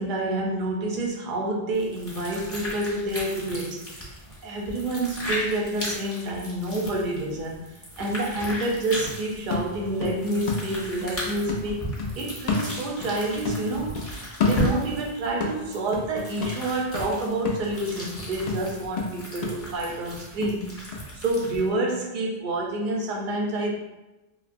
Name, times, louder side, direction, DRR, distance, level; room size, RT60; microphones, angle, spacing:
voice 1, 0.0-4.1 4.4-11.9 12.2-20.8 21.2-23.8, right 2 dB, 60° right, -1 dB, 0.6 m, -28 dB
sound 1, 1.7-21.7, equal, 20° left, 0.4 m, -36 dB
sound 2, 7.5-7.6 8.0-11.2 11.5-13.2 13.4-15.1 15.4-21.1 21.4-21.5, left 4 dB, 80° left, 0.3 m, -31 dB
3.2 x 2.0 x 2.5 m, 1.0 s
omnidirectional pair, 1.2 m